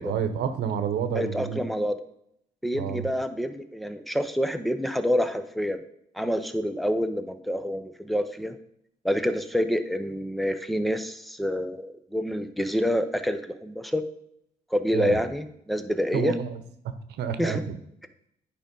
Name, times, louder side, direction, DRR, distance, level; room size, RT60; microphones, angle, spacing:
voice 1, 0.0-1.6 2.7-3.1 14.9-15.2 16.1-17.8, right 7 dB, 90° right, 10 dB, 1.0 m, -29 dB
voice 2, 1.1-2.0 2.6-5.8 6.1-8.6 9.0-14.0 14.7-16.3 17.4-17.6, equal, ahead, 10 dB, 0.7 m, -27 dB
9.9 x 5.1 x 5.3 m, 0.75 s
cardioid pair, 130°, 17 cm